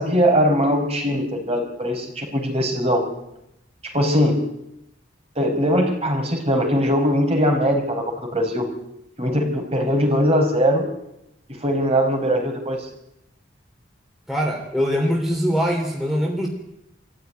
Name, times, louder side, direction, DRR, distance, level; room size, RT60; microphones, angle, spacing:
voice 1, 0.0-3.0 3.8-4.4 5.3-8.7 9.2-10.8 11.5-12.9, equal, 35° right, 2 dB, 4.8 m, -21 dB
voice 2, 14.3-16.5, equal, ahead, -1 dB, 3.2 m, -22 dB
24.5 x 15.0 x 9.5 m, 0.84 s
head